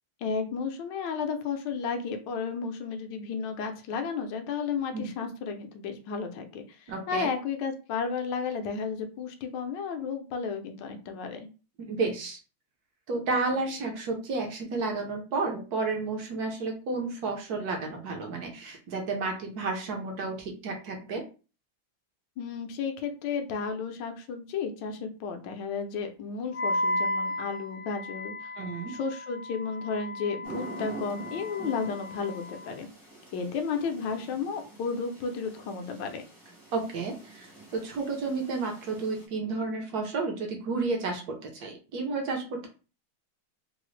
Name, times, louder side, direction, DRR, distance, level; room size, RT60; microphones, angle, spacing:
voice 1, 0.2-11.4 22.4-28.5 28.9-32.9 33.3-36.2, left 5 dB, 70° left, 5 dB, 1.1 m, -33 dB
voice 2, 6.9-7.3 11.8-12.4 13.1-21.2 28.6-28.9 36.7-42.7, right 3 dB, 65° right, 2 dB, 1.0 m, -31 dB
Wind instrument woodwind instrument, 26.5-32.7, left 1 dB, 90° left, 0.6 m, -34 dB
sound 1, 30.4-39.3, right 2 dB, 30° right, 0.4 m, -46 dB
3.8 x 2.0 x 3.1 m, 0.34 s
omnidirectional pair, 2.3 m